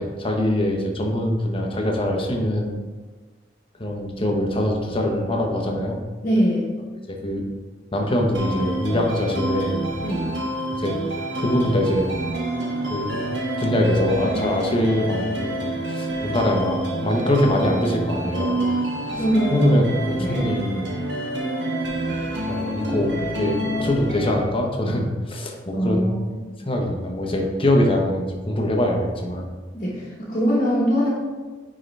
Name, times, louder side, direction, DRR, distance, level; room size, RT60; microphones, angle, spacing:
voice 1, 0.0-2.7 3.8-6.0 7.1-7.4 7.9-9.8 10.7-11.0 11.4-12.1 12.8-13.2 13.6-15.6 15.9-18.5 19.1-19.2 19.5-20.9 22.5-26.1 26.7-29.5, left 1 dB, 30° left, 1 dB, 1.0 m, -23 dB
voice 2, 6.2-6.7 10.0-10.3 19.2-19.6 20.2-20.5 25.7-26.3 29.7-31.1, equal, 45° left, -8 dB, 1.3 m, -22 dB
sound 1, 8.3-24.3, right 1 dB, 90° right, 1.3 m, -28 dB
9.3 x 3.8 x 3.3 m, 1.3 s
head